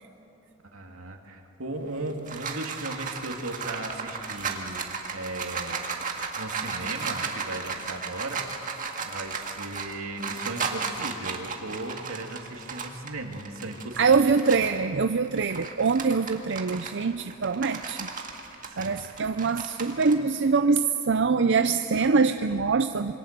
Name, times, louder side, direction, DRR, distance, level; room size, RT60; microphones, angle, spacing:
voice 1, 0.7-4.8 5.1-5.8 6.4-8.4 9.0-14.2 18.8-19.1, right 2 dB, 80° right, 2 dB, 2.7 m, -36 dB
sound 1, 1.9-14.8 15.2-20.1, right 5 dB, 40° right, 1.9 m, -35 dB
voice 2, 14.0-18.1 18.8-23.2, right 4 dB, 55° right, 8 dB, 0.6 m, -24 dB
27.0 x 23.5 x 6.8 m, 3.0 s
head